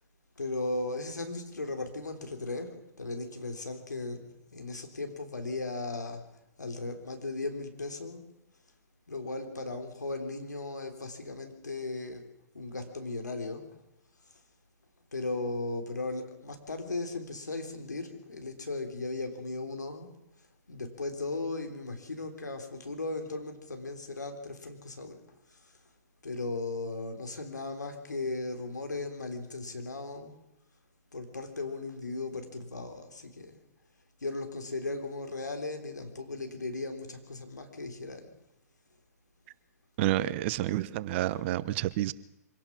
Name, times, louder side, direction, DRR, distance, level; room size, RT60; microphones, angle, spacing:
voice 1, 0.4-6.2 6.6-8.2 9.1-12.2 12.5-13.7 15.1-20.1 20.7-25.2 25.5-25.7 26.2-30.4 31.1-33.6 34.2-38.3, left 3 dB, 85° left, 5 dB, 3.6 m, -37 dB
voice 2, 40.0-42.1, right 15 dB, 40° right, 18 dB, 0.9 m, -29 dB
24.5 x 17.5 x 6.2 m, 0.89 s
figure-of-eight pair, 120°, 9 cm